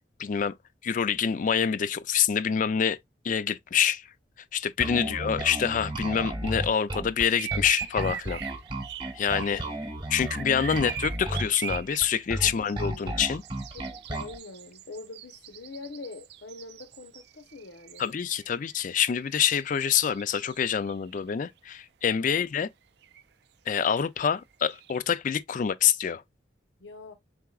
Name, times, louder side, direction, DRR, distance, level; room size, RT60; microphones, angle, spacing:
voice 1, 0.2-0.5 0.8-3.0 3.2-4.1 4.5-8.4 9.1-9.6 10.1-13.4 18.0-22.7 23.7-26.2, left 8 dB, 45° left, 0.3 m, -26 dB
Bass guitar, 4.8-14.4, right 1 dB, 25° right, 0.9 m, -34 dB
voice 2, 4.9-5.4 9.5-9.8 12.4-12.7 12.9-13.1 13.7-18.0 22.2-22.5 26.8-27.1, left 3 dB, 90° left, 0.8 m, -44 dB
sound 1, 7.2-9.7 10.2-18.4 18.7-19.3 19.6-21.3 23.0-23.2 24.5-25.0, right 10 dB, 60° right, 0.4 m, -40 dB
4.7 x 3.8 x 2.3 m
head